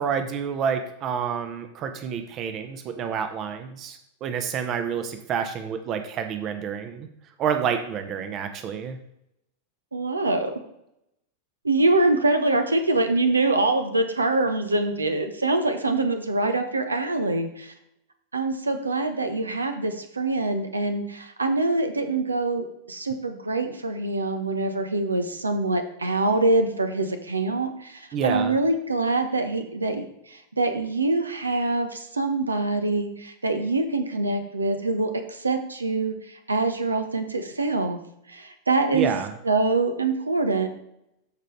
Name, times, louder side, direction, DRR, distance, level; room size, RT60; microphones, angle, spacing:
voice 1, 0.0-7.1 7.4-9.0 28.1-28.6 38.9-39.3, right 7 dB, 35° right, 8 dB, 0.9 m, -28 dB
voice 2, 9.9-10.6 11.6-17.7 18.3-38.0 38.3-39.1 39.4-40.7, right 2 dB, 80° right, 7 dB, 1.0 m, -24 dB
13.5 x 5.1 x 3.2 m, 0.79 s
figure-of-eight pair, 90°, 0 cm